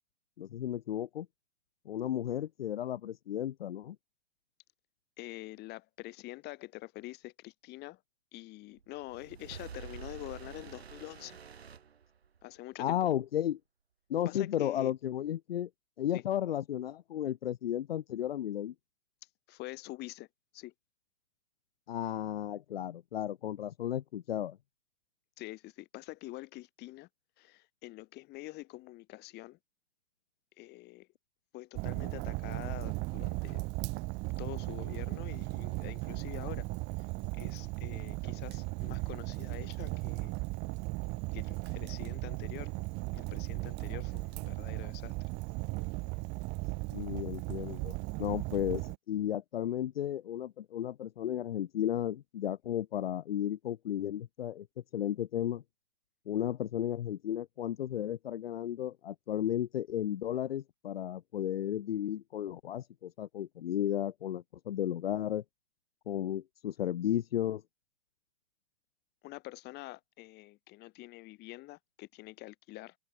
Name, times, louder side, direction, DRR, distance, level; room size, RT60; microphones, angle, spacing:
voice 1, 0.4-1.3 1.9-4.0 12.8-13.6 14.1-15.7 16.0-18.7 21.9-24.6 46.9-54.7 54.9-55.6 56.3-65.4 66.1-67.6, left 11 dB, 70° left, 0.7 m, -34 dB
voice 2, 5.2-8.0 8.3-11.4 12.4-13.0 14.3-14.9 16.1-16.2 19.5-20.3 20.5-20.7 25.4-27.1 27.4-29.6 30.6-31.1 31.5-33.6 34.4-36.7 37.0-37.1 37.3-40.3 41.3-42.8 43.1-45.3 69.2-73.0, left 19 dB, 35° left, 5.4 m, -46 dB
sound 1, 8.8-12.6, right 7 dB, 80° right, 2.3 m, -48 dB
Fire, 31.7-49.0, right 26 dB, 35° right, 2.0 m, -37 dB
hypercardioid pair, 120°, 31 cm